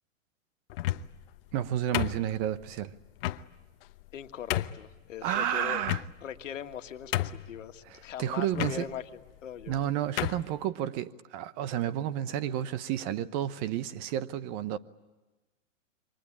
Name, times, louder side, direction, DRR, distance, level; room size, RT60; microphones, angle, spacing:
sound 1, 0.7-1.2 1.9-2.6 3.2-3.4 4.0-4.1 4.5-4.8 5.8-6.4 6.7-6.8 7.1-7.6 8.5-8.8 9.6-9.8 10.2-10.5, left 15 dB, 45° left, 1.0 m, -31 dB
voice 1, 1.5-2.9 5.2-6.0 7.9-8.8 9.7-14.8, right 11 dB, 35° right, 1.0 m, -31 dB
voice 2, 4.1-5.8 6.2-9.0 9.4-9.8, left 9 dB, 70° left, 1.8 m, -40 dB
28.0 x 24.0 x 8.6 m
hypercardioid pair, 125°, 39 cm